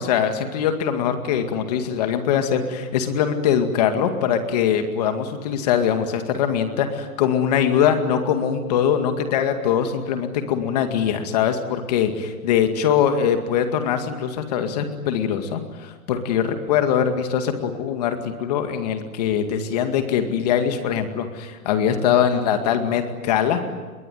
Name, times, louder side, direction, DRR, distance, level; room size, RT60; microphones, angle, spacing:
voice 1, 0.0-23.6, left 8 dB, 25° left, 7 dB, 2.2 m, -22 dB
27.0 x 22.0 x 9.4 m, 1.3 s
hypercardioid pair, 170°, 44 cm